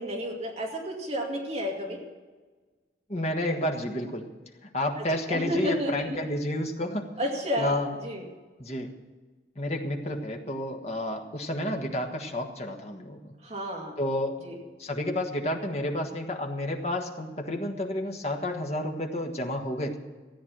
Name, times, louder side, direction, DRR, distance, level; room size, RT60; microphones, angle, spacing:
voice 1, 0.0-2.0 5.0-6.2 7.2-7.8 8.0-8.2 13.4-14.0 14.4-14.6, equal, 35° right, -1 dB, 2.4 m, -31 dB
voice 2, 3.1-4.3 4.6-7.1 7.6-7.9 8.6-8.9 9.5-13.3 14.0-14.4 14.8-20.0, left 1 dB, 35° left, 2 dB, 1.5 m, -30 dB
14.5 x 9.5 x 7.4 m, 1.3 s
head